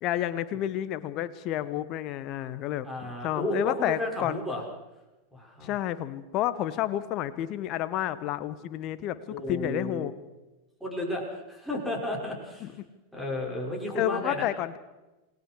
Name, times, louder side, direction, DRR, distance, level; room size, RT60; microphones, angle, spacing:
voice 1, 0.0-2.9 3.2-4.4 5.6-10.1 12.6-12.9 13.9-14.7, left 12 dB, 40° left, 14 dB, 1.5 m, -30 dB
voice 2, 2.8-4.6 5.3-5.7 9.3-10.1 10.8-12.8 13.1-14.5, left 1 dB, ahead, -1 dB, 6.6 m, -33 dB
28.5 x 20.0 x 4.9 m, 1.1 s
figure-of-eight pair, 90°, 0 cm